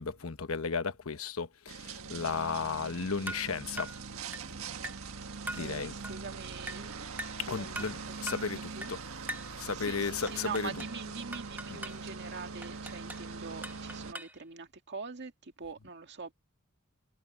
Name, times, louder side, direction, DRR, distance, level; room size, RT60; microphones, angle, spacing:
voice 1, 0.0-3.9 5.5-5.9 7.4-9.0 9.6-10.7 11.7-11.8, left 5 dB, 80° left, 1.0 m, -34 dB
sound 1, 1.7-14.1, right 4 dB, 85° right, 1.5 m, -42 dB
sound 2, 3.3-3.5 3.8-4.0 4.3-4.5 4.8-5.1 5.5-5.7 6.0-6.2 6.7-6.9 7.2-7.4 7.7-8.0 8.3-8.5 8.8-9.0 9.3-9.5 10.3-11.0 11.3-12.0 12.6-13.3 13.6-14.4, right 1 dB, 10° right, 1.1 m, -41 dB
voice 2, 4.4-5.0 5.4-7.1 7.5-8.9 9.7-16.3, right 4 dB, 55° right, 2.0 m, -44 dB
head